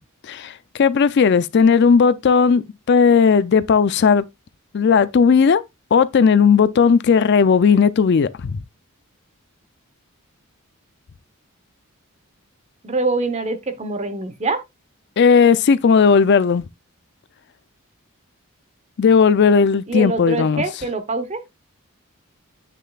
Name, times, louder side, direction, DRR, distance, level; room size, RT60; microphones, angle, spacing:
voice 1, 0.3-4.2 4.7-5.6 5.9-8.6 15.2-16.7 19.0-20.6, left 6 dB, 50° left, 0.4 m, -15 dB
voice 2, 12.8-14.6 19.9-21.4, right 3 dB, 30° right, 0.9 m, -24 dB
7.6 x 6.6 x 2.4 m
head